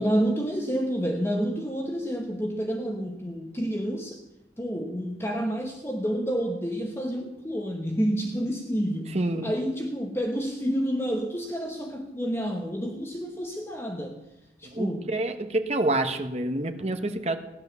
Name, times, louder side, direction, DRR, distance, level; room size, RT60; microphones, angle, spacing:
voice 1, 0.0-4.2 4.6-9.2 9.4-14.2 14.6-15.1, equal, 15° left, 3 dB, 1.0 m, -29 dB
voice 2, 9.1-9.5 14.6-17.4, right 2 dB, 35° right, 7 dB, 1.1 m, -27 dB
16.0 x 10.5 x 6.9 m, 0.98 s
head